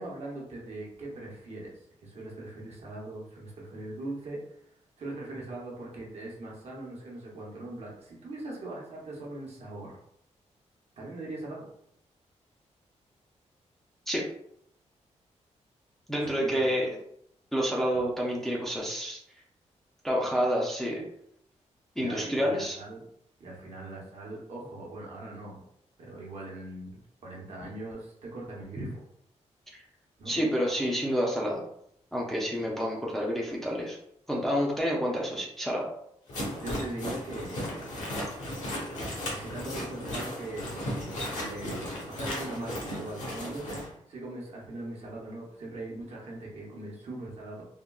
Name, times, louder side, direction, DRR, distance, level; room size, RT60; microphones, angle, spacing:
voice 1, 0.0-4.6 5.0-10.0 11.0-11.6 16.2-16.7 22.0-23.0 23.4-25.6 26.0-29.0 30.2-30.4 36.6-38.0 39.3-47.7, right 2 dB, 60° right, -3 dB, 0.9 m, -41 dB
voice 2, 16.1-16.9 17.5-19.2 20.0-21.0 22.0-22.8 28.8-28.9 30.3-31.6 32.1-34.0 34.3-35.9, equal, 5° left, -3 dB, 0.4 m, -28 dB
sound 1, 36.3-43.9, equal, 75° left, 1.1 m, -35 dB
3.6 x 2.2 x 2.2 m, 0.72 s
wide cardioid pair, 160°, 12 cm